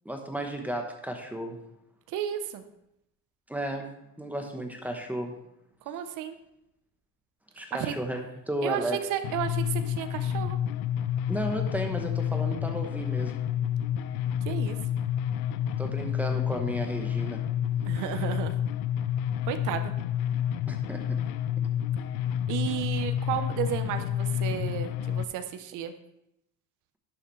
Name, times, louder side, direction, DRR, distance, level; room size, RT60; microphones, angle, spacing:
voice 1, 0.0-1.6 3.5-3.9 4.2-5.3 7.5-9.0 11.3-13.4 15.8-17.4 20.7-21.2, right 1 dB, 5° right, 3 dB, 1.0 m, -33 dB
voice 2, 2.1-2.6 5.9-6.4 7.7-7.9 8.6-10.6 14.4-14.8 17.9-18.5 19.5-19.9 22.5-25.9, right 10 dB, 55° right, 9 dB, 0.8 m, -33 dB
sound 1, 9.2-25.2, left 10 dB, 75° left, 0.6 m, -29 dB
10.5 x 7.2 x 3.2 m, 0.82 s
cardioid pair, 135°, 36 cm